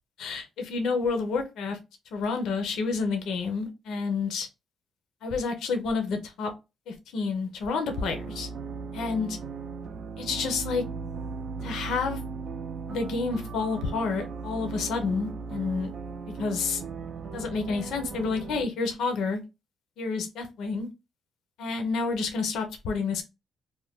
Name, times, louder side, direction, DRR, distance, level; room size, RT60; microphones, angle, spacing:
voice 1, 0.2-1.8 2.1-4.5 5.2-6.5 6.9-8.5 8.9-9.4 10.2-10.8 11.6-12.2 12.9-15.9 16.4-16.8 17.3-19.4 20.0-20.9 21.6-23.2, left 4 dB, 80° left, 0.6 m, -29 dB
sound 1, 7.9-18.6, right 5 dB, 60° right, 0.4 m, -37 dB
2.5 x 2.1 x 3.5 m
cardioid pair, 90°, 0 cm